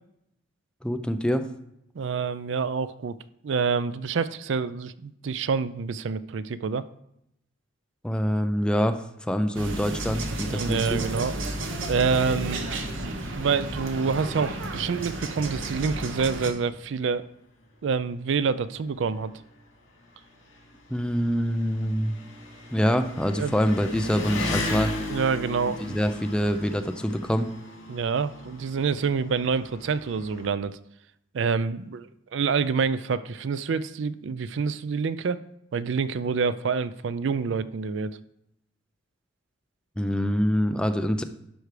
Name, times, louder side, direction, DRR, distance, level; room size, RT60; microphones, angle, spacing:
voice 1, 0.8-1.5 8.0-10.8 20.9-22.1 22.7-24.9 25.8-27.5 40.0-41.2, equal, 5° left, 8 dB, 0.5 m, -25 dB
voice 2, 2.0-3.1 3.4-6.8 10.5-11.4 11.9-12.7 13.3-17.2 17.8-19.3 23.4-23.6 25.1-26.0 27.9-30.8 31.3-35.4 35.7-38.2, right 5 dB, 70° right, 15 dB, 0.4 m, -27 dB
sound 1, 9.5-16.5, right 2 dB, 90° right, 1.1 m, -32 dB
Engine, 15.9-16.0 16.4-16.5 17.5-17.6 17.8-30.5, left 2 dB, 75° left, 2.5 m, -37 dB
11.5 x 4.7 x 4.9 m, 0.78 s
head